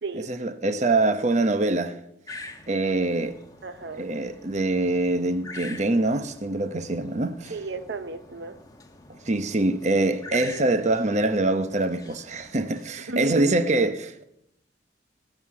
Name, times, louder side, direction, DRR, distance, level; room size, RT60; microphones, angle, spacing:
voice 1, 0.1-1.9 2.7-3.4 3.9-7.6 9.2-14.2, right 2 dB, 40° right, 0.9 m, -24 dB
sound 1, 2.3-12.8, left 2 dB, 20° left, 1.1 m, -45 dB
voice 2, 3.6-4.2 7.5-8.5 13.1-13.8, right 3 dB, 65° right, 0.7 m, -34 dB
18.5 x 7.8 x 7.2 m
head